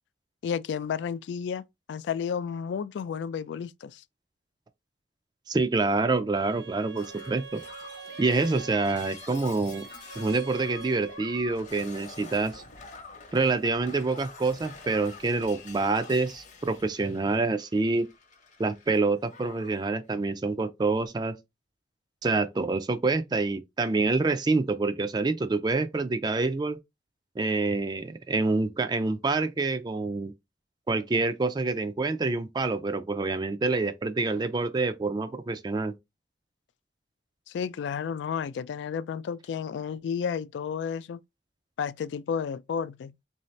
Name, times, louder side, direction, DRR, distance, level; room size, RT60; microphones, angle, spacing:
voice 1, 0.4-4.0 37.5-41.2 41.8-43.1, left 7 dB, 90° left, 0.3 m, -32 dB
voice 2, 5.5-7.6 8.2-9.9 10.2-12.6 13.3-18.1 18.6-21.4 22.2-26.8 27.4-30.3 30.9-35.9, right 3 dB, 25° right, 0.3 m, -27 dB
Bowed string instrument, 6.3-11.5, right 5 dB, 85° right, 0.8 m, -44 dB
Shatter, 7.0-19.0 19.3-19.9 20.9-21.1, left 4 dB, 45° left, 0.8 m, -47 dB
3.8 x 2.7 x 3.1 m
head